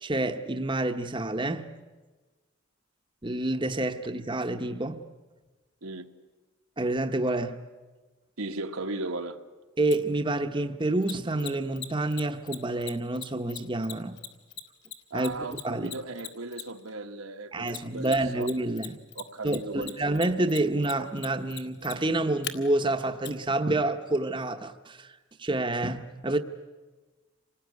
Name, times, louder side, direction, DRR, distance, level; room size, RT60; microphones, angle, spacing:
voice 1, 0.0-1.7 3.2-5.0 6.8-7.6 9.8-14.2 15.1-15.3 15.6-15.9 17.5-19.0 19.4-26.4, right 2 dB, 20° right, 0.9 m, -28 dB
voice 2, 8.4-9.4 15.1-18.5 19.1-20.2, right 2 dB, 85° right, 1.4 m, -36 dB
Mechanisms, 9.9-10.0 11.0-16.9 17.7-18.5 18.8-22.5 23.2-23.3, left 10 dB, 50° left, 1.8 m, -38 dB
27.0 x 19.5 x 9.4 m
head